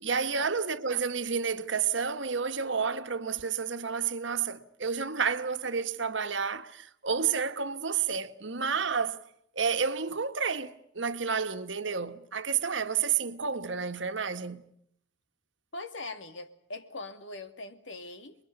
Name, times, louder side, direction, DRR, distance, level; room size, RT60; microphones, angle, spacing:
voice 1, 0.0-9.2 9.5-14.7, right 6 dB, 75° right, 1.5 m, -30 dB
voice 2, 15.7-18.4, left 2 dB, 80° left, 2.6 m, -41 dB
28.5 x 22.0 x 6.8 m
head